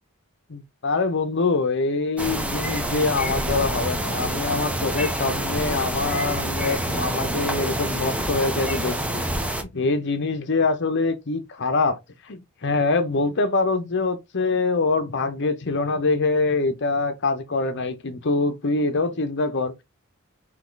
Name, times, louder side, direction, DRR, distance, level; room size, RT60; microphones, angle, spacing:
voice 1, 0.5-12.0 12.2-19.8, left 3 dB, 55° left, 0.8 m, -24 dB
sound 1, 2.2-9.6, right 1 dB, 5° right, 0.7 m, -27 dB
3.8 x 2.9 x 3.8 m
head